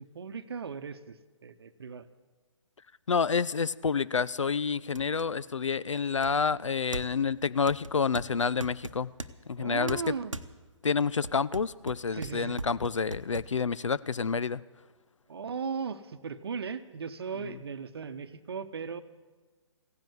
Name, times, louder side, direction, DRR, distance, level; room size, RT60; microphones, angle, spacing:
voice 1, 0.0-2.1 9.6-10.3 12.1-12.6 15.3-19.0, right 6 dB, 50° right, 12 dB, 0.9 m, -37 dB
voice 2, 3.1-9.1 9.5-10.0 10.8-14.6, left 5 dB, 70° left, 18 dB, 0.4 m, -28 dB
sound 1, 3.8-3.9 4.4-4.5 5.0-5.3 6.2-7.3 7.7-9.3 9.9-10.5 11.0-13.5, right 2 dB, 85° right, 0.9 m, -40 dB
15.5 x 10.5 x 8.0 m, 1.3 s
figure-of-eight pair, 135°, 16 cm